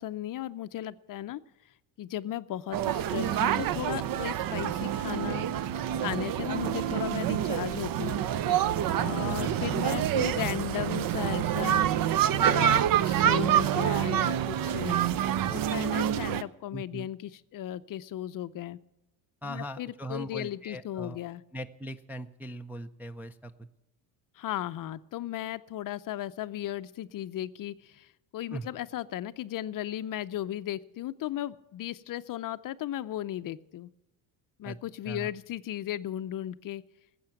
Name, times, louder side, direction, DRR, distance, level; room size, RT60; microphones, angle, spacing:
voice 1, 0.0-1.4 2.0-5.5 6.0-8.2 9.0-12.2 12.4-15.0 15.5-18.8 19.4-21.4 24.3-33.9 34.6-36.8, left 12 dB, 45° left, 13 dB, 0.6 m, -36 dB
sound 1, 2.7-16.4, right 10 dB, 45° right, 0.6 m, -27 dB
Run, 6.7-13.3, right 4 dB, 75° right, 1.9 m, -42 dB
voice 2, 16.7-17.1 19.4-21.2 21.5-23.7 28.5-28.7 34.6-34.8 35.1-35.3, right 1 dB, 5° right, 5 dB, 0.4 m, -39 dB
14.5 x 7.9 x 9.0 m, 0.97 s
supercardioid pair, 100°, 48 cm